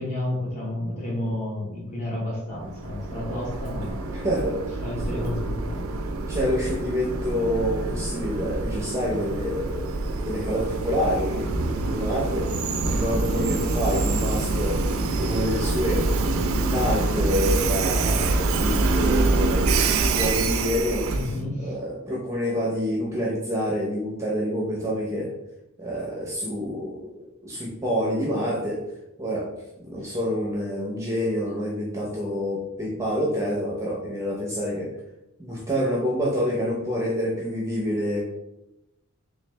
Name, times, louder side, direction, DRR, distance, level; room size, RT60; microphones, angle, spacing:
voice 1, 0.0-4.0 4.8-5.8 21.1-21.8 30.0-30.2, left 1 dB, 35° left, -4 dB, 1.4 m, -31 dB
Train, 2.6-21.4, right 3 dB, 70° right, 0.4 m, -26 dB
voice 2, 4.1-4.6 6.3-9.9 10.2-12.5 12.9-14.8 15.2-16.1 16.4-19.7 20.1-25.3 25.8-27.1 27.4-28.9 29.2-29.5 29.8-34.9 35.4-38.2, equal, 15° right, -3 dB, 0.7 m, -27 dB
3.5 x 3.2 x 3.3 m, 0.91 s
head